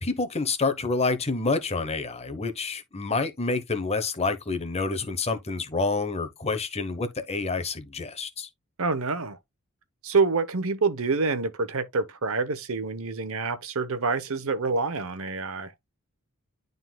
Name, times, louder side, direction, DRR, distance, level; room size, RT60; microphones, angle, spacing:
voice 1, 0.0-8.5, left 3 dB, 30° left, 1.0 m, -28 dB
voice 2, 8.8-9.4 10.0-15.7, right 4 dB, 65° right, 0.9 m, -27 dB
11.0 x 3.9 x 2.3 m
head